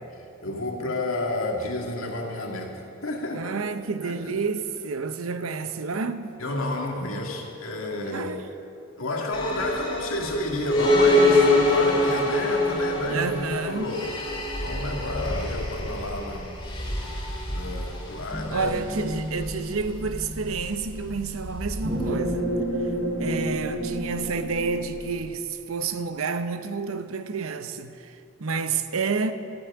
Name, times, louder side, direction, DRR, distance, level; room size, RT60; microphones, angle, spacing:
voice 1, 0.4-3.6 4.0-4.4 6.4-8.4 9.0-13.3 13.7-14.1 14.6-16.5 17.5-18.7, left 1 dB, 80° left, 2.1 m, -30 dB
voice 2, 3.3-6.4 8.0-8.4 13.1-14.0 18.5-22.5 23.2-29.3, right 4 dB, 85° right, 0.8 m, -29 dB
sound 1, 9.3-22.1, left 1 dB, 20° left, 2.5 m, -26 dB
sound 2, 18.3-25.1, right 1 dB, 10° right, 3.3 m, -31 dB
13.5 x 8.0 x 9.7 m
head